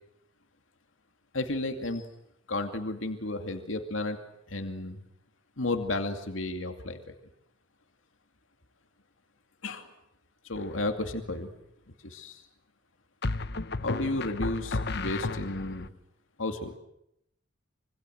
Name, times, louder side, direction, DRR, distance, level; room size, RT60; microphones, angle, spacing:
voice 1, 1.3-2.1 2.5-4.2 4.5-5.0 5.6-7.2 9.6-9.9 10.4-11.5 12.0-12.4 13.8-15.9 16.4-16.8, left 2 dB, 80° left, 5 dB, 2.5 m, -33 dB
sound 1, 10.6-11.0 13.2-15.9, left 3 dB, 55° left, 1.0 m, -33 dB
26.5 x 25.0 x 7.9 m, 0.79 s
head